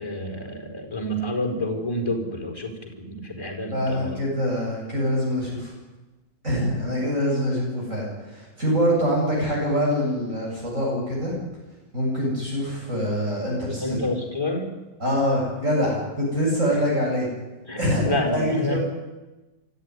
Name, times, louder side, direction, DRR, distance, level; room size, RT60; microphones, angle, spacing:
voice 1, 0.0-4.2 13.8-14.7 16.7-16.8 17.6-18.8, left 1 dB, 10° left, 3 dB, 4.6 m, -28 dB
voice 2, 3.7-5.7 6.4-11.3 11.9-14.0 15.0-17.3 17.8-18.8, equal, 40° right, -3 dB, 8.3 m, -24 dB
24.5 x 14.5 x 9.8 m, 1.1 s
omnidirectional pair, 2.2 m